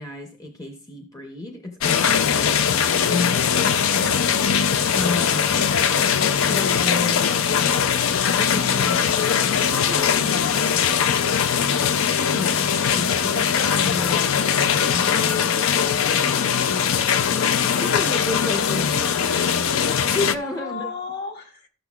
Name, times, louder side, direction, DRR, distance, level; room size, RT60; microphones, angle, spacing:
voice 1, 0.0-4.2 4.9-5.7 6.3-8.0 8.3-10.9 11.8-14.4 14.9-16.7 17.3-20.9, left 2 dB, 15° left, 0.7 m, -32 dB
sound 1, 1.8-20.4, left 7 dB, 65° left, 0.4 m, -21 dB
voice 2, 20.6-21.7, left 5 dB, 45° left, 1.4 m, -38 dB
13.5 x 6.5 x 2.3 m
head